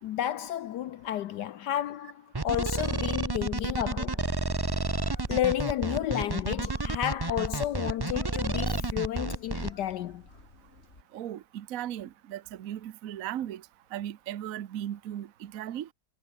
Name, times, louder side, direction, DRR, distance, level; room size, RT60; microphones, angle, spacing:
voice 1, 0.0-4.3 5.3-10.2, left 12 dB, 75° left, 1.3 m, -31 dB
sound 1, 2.3-9.7, right 3 dB, 20° right, 0.6 m, -30 dB
Meow, 4.7-11.0, left 2 dB, 35° left, 4.1 m, -51 dB
voice 2, 11.1-13.6 13.9-15.9, right 11 dB, 60° right, 1.1 m, -37 dB
omnidirectional pair, 1.9 m